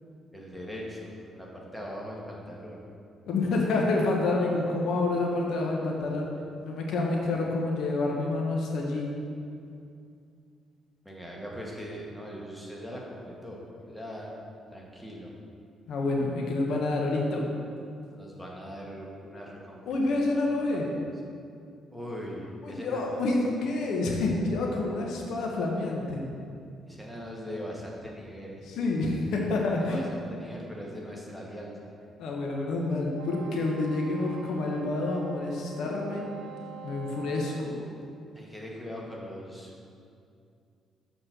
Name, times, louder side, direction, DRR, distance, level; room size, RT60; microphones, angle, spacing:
voice 1, 0.3-2.8 11.0-14.3 14.7-15.3 18.1-20.2 20.7-20.8 21.9-23.2 26.9-28.6 29.8-31.9 38.3-39.7, equal, 5° left, -3 dB, 1.5 m, -40 dB
voice 2, 3.3-6.3 6.6-9.1 15.9-17.5 19.9-20.9 22.6-26.2 28.7-30.0 32.2-36.3 36.8-37.8, left 2 dB, 75° left, -1 dB, 1.0 m, -28 dB
Wind instrument woodwind instrument, 33.2-37.7, right 4 dB, 90° right, 0.8 m, -46 dB
6.7 x 4.2 x 6.0 m, 2.4 s
cardioid pair, 90°, 0 cm